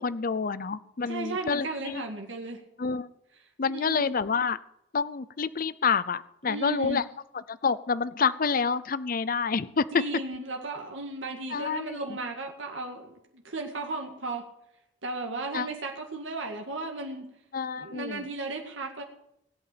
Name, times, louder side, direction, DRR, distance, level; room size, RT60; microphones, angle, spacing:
voice 1, 0.0-2.0 2.8-3.1 3.6-4.6 4.9-7.0 7.5-10.0 11.5-12.0 15.5-15.7 17.5-18.3, left 5 dB, 45° left, 16 dB, 0.6 m, -28 dB
voice 2, 1.1-2.6 3.7-4.0 6.4-7.0 9.9-14.5 15.0-17.3 17.8-19.0, right 2 dB, 80° right, 2 dB, 2.1 m, -35 dB
18.5 x 8.6 x 6.8 m, 0.78 s
head